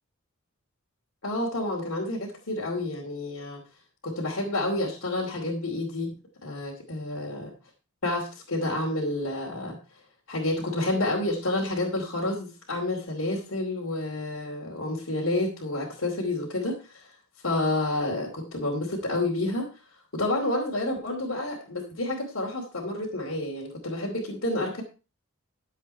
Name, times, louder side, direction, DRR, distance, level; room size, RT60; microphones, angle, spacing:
voice 1, 1.2-3.6 4.0-6.1 6.4-7.5 8.0-9.8 10.3-17.1 17.4-19.7 20.1-24.8, left 2 dB, 75° left, -3 dB, 2.9 m, -29 dB
12.5 x 7.9 x 4.5 m, 0.32 s
head